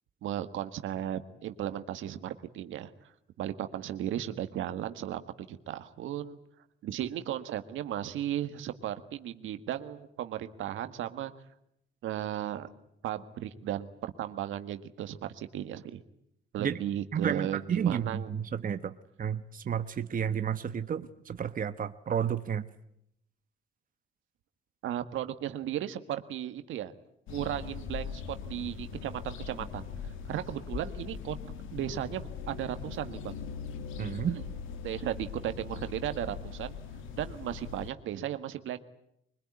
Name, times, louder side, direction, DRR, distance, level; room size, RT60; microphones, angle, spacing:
voice 1, 0.2-2.9 3.4-6.4 6.8-11.3 12.0-12.7 13.0-16.0 16.5-18.3 24.8-26.9 27.3-29.9 30.3-31.4 31.7-33.3 34.3-34.4 34.8-36.7 37.2-38.8, right 11 dB, 85° right, 9 dB, 1.7 m, -35 dB
voice 2, 17.1-22.7 34.0-34.4, right 8 dB, 45° right, 10 dB, 1.1 m, -31 dB
sound 1, 27.3-37.9, left 6 dB, 90° left, 2.2 m, -41 dB
24.0 x 21.0 x 9.8 m, 0.75 s
cardioid pair, 90°, 20 cm